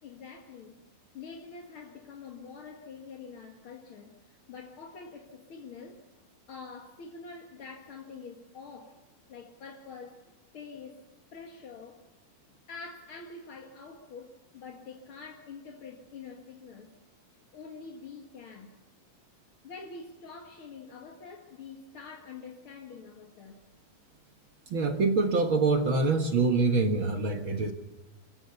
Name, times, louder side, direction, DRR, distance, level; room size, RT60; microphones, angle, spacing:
voice 1, 0.0-0.9 1.1-6.0 6.5-9.0 9.3-10.2 10.5-11.1 11.3-12.1 12.7-16.9 17.5-18.8 19.6-23.6, left 5 dB, 45° left, 1.9 m, -46 dB
voice 2, 24.7-27.7, right 3 dB, 55° right, 1.4 m, -25 dB
28.5 x 15.0 x 7.0 m
omnidirectional pair, 4.4 m